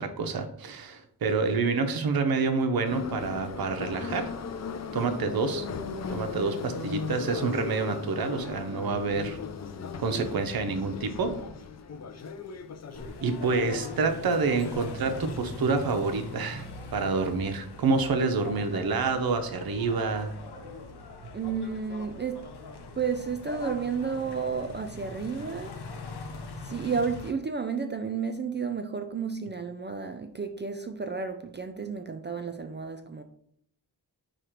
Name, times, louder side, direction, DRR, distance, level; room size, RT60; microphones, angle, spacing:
voice 1, 0.0-4.3 4.9-5.6 6.1-9.4 10.0-11.4 13.2-20.3, right 4 dB, 60° right, 0.7 m, -28 dB
Subway metro underground, 2.9-15.4, left 6 dB, 40° left, 0.4 m, -38 dB
sound 1, 12.9-27.3, left 3 dB, 70° left, 0.7 m, -42 dB
voice 2, 21.3-22.5 22.9-25.8 26.6-33.2, right 5 dB, 30° right, 0.3 m, -32 dB
4.9 x 2.4 x 4.4 m
cardioid pair, 70°, 41 cm